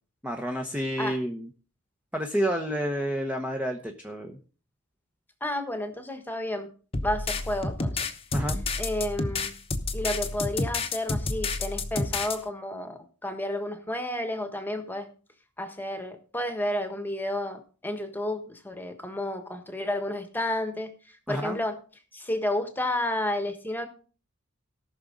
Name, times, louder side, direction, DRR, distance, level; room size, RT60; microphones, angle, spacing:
voice 1, 0.2-1.5 2.1-4.4 8.3-8.6 21.3-21.6, equal, 5° right, 3 dB, 0.9 m, -29 dB
voice 2, 5.4-6.7 7.0-8.1 8.8-9.5 9.9-15.1 15.6-20.9 21.3-21.7 22.1-23.9, left 1 dB, 10° left, 7 dB, 1.4 m, -31 dB
sound 1, 6.9-12.4, left 3 dB, 30° left, 1.0 m, -30 dB
18.0 x 6.1 x 3.9 m, 0.39 s
head